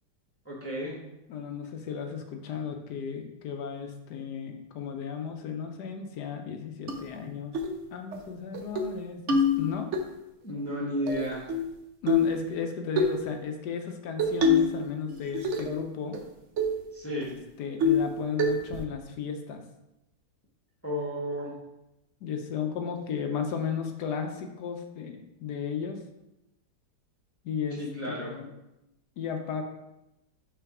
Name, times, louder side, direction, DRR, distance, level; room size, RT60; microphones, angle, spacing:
voice 1, 0.4-1.0 10.4-11.5 16.9-17.3 20.8-21.5 27.7-28.3, equal, 10° left, -4 dB, 0.9 m, -33 dB
voice 2, 1.3-7.6 7.9-9.9 12.0-16.2 17.6-19.6 22.2-26.0 27.4-28.5 29.2-29.6, left 6 dB, 70° left, 5 dB, 1.2 m, -34 dB
sound 1, 6.9-7.0 7.5-7.7 8.1-8.2 8.5-8.9 9.3-10.0 11.1-11.7 12.1-12.4 13.0-13.2 14.2-14.8 15.1-15.8 16.1-16.2 16.6-16.8 17.2-17.3 17.8-18.1 18.4-18.8, left 3 dB, 60° right, 0.7 m, -25 dB
5.8 x 3.9 x 4.7 m, 0.91 s
omnidirectional pair, 2.0 m